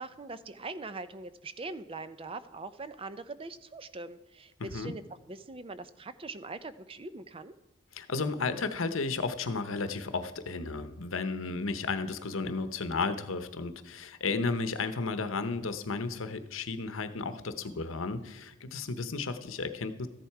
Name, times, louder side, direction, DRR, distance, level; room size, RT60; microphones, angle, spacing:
voice 1, 0.0-7.5, right 3 dB, 25° right, 13 dB, 0.5 m, -42 dB
voice 2, 4.6-4.9 7.9-20.1, left 4 dB, 75° left, 10 dB, 0.9 m, -33 dB
14.0 x 10.5 x 4.7 m, 0.99 s
head